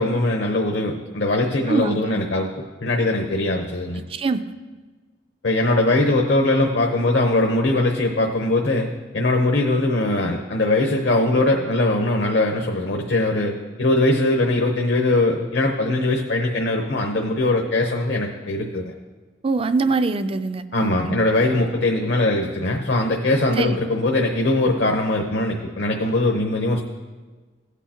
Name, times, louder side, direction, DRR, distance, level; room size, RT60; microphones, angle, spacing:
voice 1, 0.0-4.0 5.4-8.9 9.1-18.9 20.7-26.8, left 2 dB, 65° left, 2 dB, 0.8 m, -21 dB
voice 2, 1.7-2.2 3.9-4.4 19.4-21.2 23.6-23.8, right 3 dB, 30° right, 11 dB, 0.4 m, -23 dB
16.5 x 8.2 x 2.8 m, 1.3 s
head